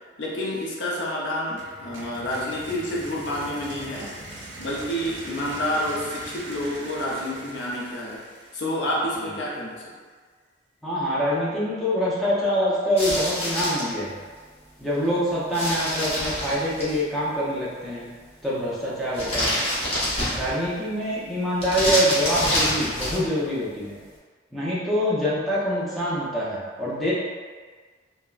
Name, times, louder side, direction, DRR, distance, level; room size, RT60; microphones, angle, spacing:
voice 1, 0.2-4.1 4.6-8.3 8.5-10.0, left 1 dB, 70° left, -4 dB, 0.6 m, -29 dB
sound 1, 1.6-9.3, right 1 dB, 70° right, 0.5 m, -41 dB
voice 2, 10.8-14.2 14.8-18.2 18.4-19.6 20.3-24.0 24.5-27.1, equal, ahead, -10 dB, 0.5 m, -25 dB
sound 2, 13.0-13.9 15.5-17.0 19.1-20.7 21.6-23.3, equal, 30° left, 0.8 m, -26 dB
3.4 x 2.0 x 2.3 m, 1.5 s
head